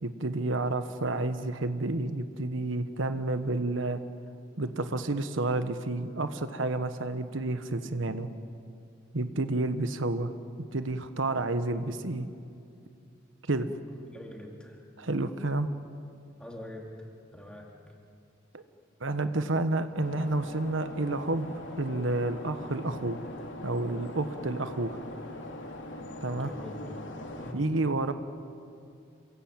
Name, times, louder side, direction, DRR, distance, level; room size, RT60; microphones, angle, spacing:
voice 1, 0.0-4.0 4.6-8.3 9.1-10.3 10.7-12.3 13.5-13.7 15.0-15.7 18.5-18.6 19.0-21.5 21.8-23.2 23.6-25.0 26.2-26.5 27.5-28.1, right 2 dB, 80° right, 10 dB, 1.3 m, -30 dB
voice 2, 13.9-14.7 16.4-16.8 17.3-17.7 26.4-26.7 27.4-27.6, left 1 dB, 5° left, -1 dB, 3.8 m, -44 dB
sound 1, 20.0-27.5, left 1 dB, 70° left, 3.0 m, -42 dB
28.5 x 23.0 x 8.9 m, 2.4 s
head